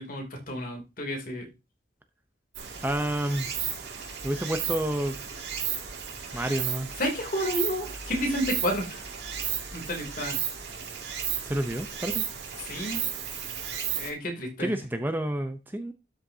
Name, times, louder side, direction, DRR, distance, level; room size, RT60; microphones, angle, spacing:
voice 1, 0.0-1.5 6.3-6.5 7.0-9.0 9.7-10.4 12.6-13.0 14.0-14.7, equal, 50° left, 2 dB, 3.0 m, -31 dB
Stream, 2.5-14.1, right 8 dB, 65° right, 2.3 m, -34 dB
voice 2, 2.8-3.5 4.2-5.1 6.3-6.9 11.4-12.2 14.6-15.9, right 1 dB, 10° right, 6 dB, 0.7 m, -29 dB
12.5 x 6.5 x 2.8 m, 0.27 s
head